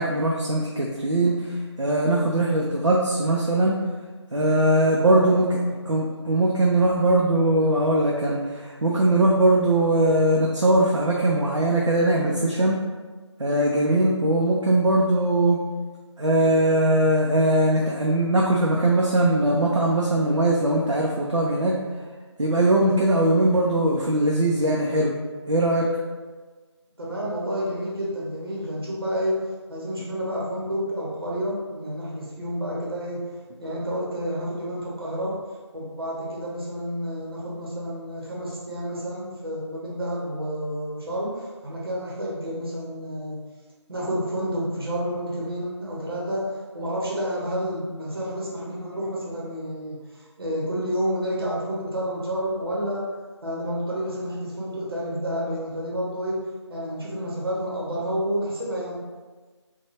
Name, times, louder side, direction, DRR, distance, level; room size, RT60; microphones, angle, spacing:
voice 1, 0.0-1.3 1.8-3.7 4.3-5.5 5.9-12.8 13.4-15.6 16.2-21.7 22.4-25.1 25.5-25.9, right 1 dB, 85° right, -2 dB, 0.5 m, -20 dB
voice 2, 4.9-5.3 27.0-29.4 29.7-33.2 33.6-35.3 35.7-43.4 43.9-53.1 53.4-56.4 56.7-59.0, equal, 50° right, -6 dB, 0.8 m, -30 dB
2.9 x 2.2 x 2.9 m, 1.4 s
figure-of-eight pair, 165°, 16 cm